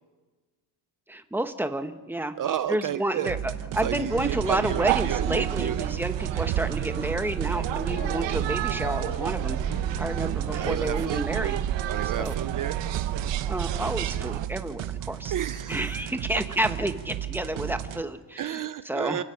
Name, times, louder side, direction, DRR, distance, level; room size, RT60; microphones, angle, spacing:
voice 1, 1.1-2.3 2.7-9.6 10.0-11.6 12.2-12.4 13.5-15.3 15.7-19.2, right 1 dB, 5° right, 8 dB, 0.9 m, -30 dB
voice 2, 2.4-3.3 3.8-5.8 10.2-11.3 11.9-12.8 15.3-16.0 18.4-19.2, right 10 dB, 45° right, 12 dB, 0.6 m, -32 dB
sound 1, 3.3-18.0, right 12 dB, 85° right, 1.2 m, -35 dB
sound 2, 3.4-11.0, left 6 dB, 25° left, 1.1 m, -45 dB
sound 3, 4.1-14.5, right 11 dB, 70° right, 0.9 m, -30 dB
29.5 x 16.5 x 5.7 m, 1.3 s
cardioid pair, 165°, 46 cm